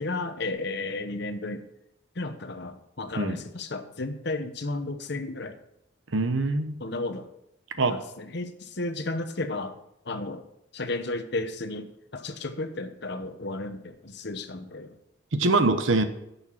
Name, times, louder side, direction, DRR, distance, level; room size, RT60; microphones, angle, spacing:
voice 1, 0.0-1.6 2.2-5.6 6.8-7.2 7.9-9.7 10.1-10.4 10.7-14.9, left 2 dB, 55° left, 9 dB, 1.0 m, -33 dB
voice 2, 6.1-6.8 7.8-8.0 15.3-16.0, right 3 dB, 75° right, 9 dB, 1.0 m, -23 dB
11.0 x 6.9 x 5.6 m, 0.82 s
head